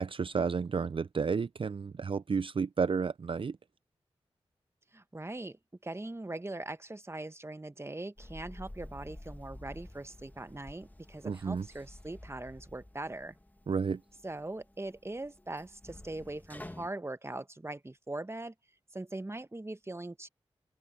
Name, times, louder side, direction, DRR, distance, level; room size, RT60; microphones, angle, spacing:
voice 1, 0.0-3.6 11.2-11.7 13.7-14.0, right 5 dB, 50° right, 0.4 m, -31 dB
voice 2, 4.9-13.4 14.2-18.5 18.9-20.3, right 2 dB, 25° right, 1.1 m, -41 dB
sound 1, 8.2-16.9, left 1 dB, 15° left, 1.4 m, -50 dB
open air
cardioid pair, 40°, 11 cm